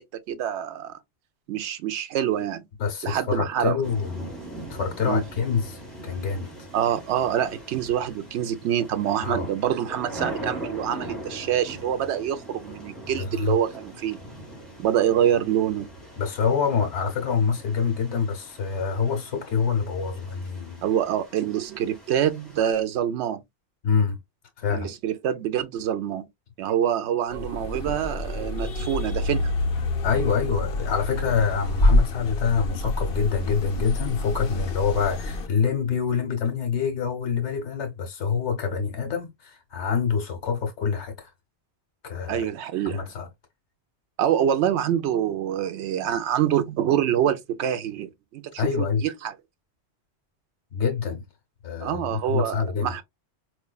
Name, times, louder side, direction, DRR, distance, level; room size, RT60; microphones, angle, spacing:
voice 1, 0.3-1.0 1.5-2.6 3.0-3.8 5.0-5.2 6.7-14.2 14.8-15.9 20.8-23.4 24.7-26.3 26.6-29.5 42.3-43.1 44.2-49.3 51.8-53.0, right 10 dB, 80° right, 0.9 m, -26 dB
voice 2, 2.8-4.3 4.7-6.5 9.2-9.5 13.1-13.6 16.2-20.8 23.8-24.2 24.6-24.9 30.0-41.3 42.0-42.5 42.8-43.3 48.6-49.0 50.7-51.2 51.6-52.9, left 6 dB, 85° left, 1.1 m, -26 dB
sound 1, 3.8-22.7, right 1 dB, ahead, 1.5 m, -41 dB
sound 2, 27.3-35.5, left 2 dB, 60° left, 0.9 m, -27 dB
4.4 x 2.6 x 2.2 m
omnidirectional pair, 1.1 m